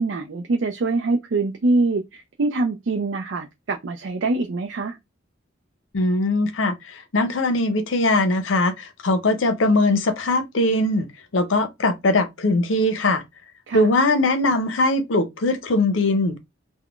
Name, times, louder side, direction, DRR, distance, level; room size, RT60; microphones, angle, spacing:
voice 1, 0.0-5.0 13.7-13.9, right 3 dB, 70° right, 0.4 m, -24 dB
voice 2, 5.9-11.1 11.3-13.2 13.7-16.4, left 2 dB, 80° left, 0.6 m, -21 dB
3.6 x 2.1 x 2.4 m
head